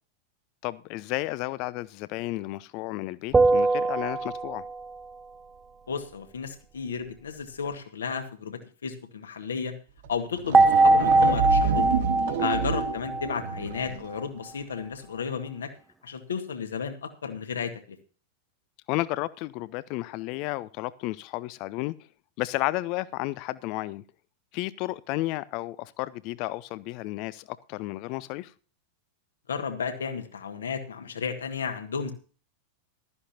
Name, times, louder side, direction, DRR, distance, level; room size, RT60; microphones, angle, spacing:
voice 1, 0.6-4.6 12.4-12.5 18.9-21.9 22.4-24.0 24.5-28.5, left 19 dB, 45° left, 0.6 m, -32 dB
sound 1, 3.3-4.9 10.5-13.9, right 3 dB, 15° right, 0.6 m, -22 dB
voice 2, 5.9-9.7 10.1-12.0 12.4-15.7 16.0-18.0 29.5-32.1, left 6 dB, 70° left, 1.8 m, -33 dB
sound 2, 10.0-10.1 10.4-14.1, right 6 dB, 55° right, 2.0 m, -29 dB
15.0 x 13.0 x 2.9 m
figure-of-eight pair, 90°, 0 cm